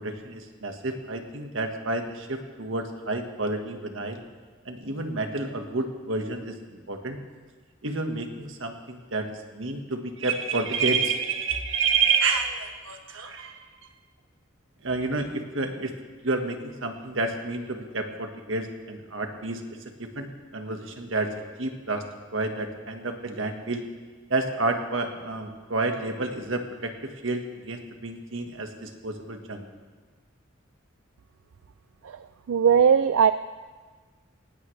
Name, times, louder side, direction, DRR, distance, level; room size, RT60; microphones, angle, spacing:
voice 1, 0.0-4.2 4.6-7.2 7.8-13.6 14.8-15.9 16.2-19.6 20.1-21.3 21.6-22.0 22.3-23.8 24.3-29.6, right 3 dB, 70° right, 4 dB, 1.6 m, -29 dB
voice 2, 32.5-33.3, right 7 dB, 90° right, 12 dB, 0.4 m, -18 dB
18.5 x 17.5 x 3.3 m, 1.4 s
head